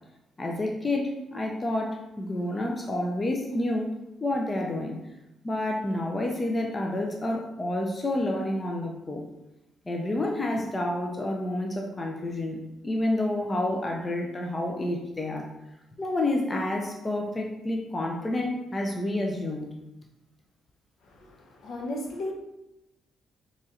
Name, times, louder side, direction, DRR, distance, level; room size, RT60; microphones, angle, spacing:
voice 1, 0.4-3.9 4.2-5.0 5.4-9.2 9.9-15.5 16.0-19.7, left 1 dB, 25° left, 1 dB, 0.6 m, -29 dB
voice 2, 21.0-22.3, left 1 dB, 65° left, 1 dB, 0.8 m, -35 dB
4.1 x 3.1 x 3.8 m, 0.93 s
cardioid pair, 90°, 0 cm